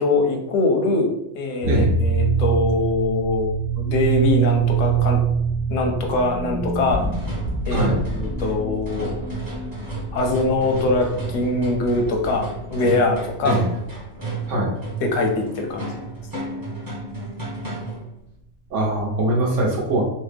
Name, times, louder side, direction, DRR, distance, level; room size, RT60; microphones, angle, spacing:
voice 1, 0.0-5.2 5.7-7.1 7.7-9.1 10.1-13.6 15.0-15.9, left 2 dB, 85° left, 2 dB, 1.0 m, -22 dB
sound 1, 1.6-12.9, right 6 dB, 40° right, 1.0 m, -24 dB
sound 2, 6.9-18.1, right 3 dB, 20° right, 0.7 m, -32 dB
voice 2, 18.7-20.1, right 2 dB, 70° right, -2 dB, 1.2 m, -21 dB
3.2 x 2.1 x 3.3 m, 0.82 s
omnidirectional pair, 1.3 m